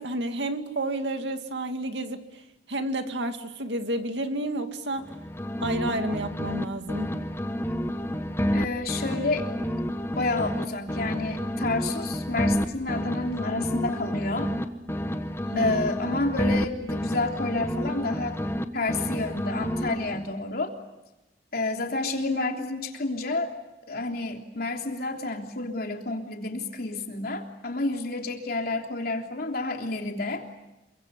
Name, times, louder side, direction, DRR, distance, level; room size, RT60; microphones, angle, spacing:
voice 1, 0.0-2.2 2.7-5.1 5.6-7.2 15.5-15.8, right 1 dB, 80° right, 2.3 m, -30 dB
sound 1, 5.0-6.6 6.9-10.6 10.9-14.6 14.9-18.6 18.9-20.3, equal, 15° left, 1.4 m, -29 dB
voice 2, 8.5-9.5 10.1-14.5 15.5-18.4 18.7-20.7 21.5-23.5 23.9-30.4, left 2 dB, 60° left, 3.4 m, -29 dB
28.0 x 24.0 x 8.4 m
head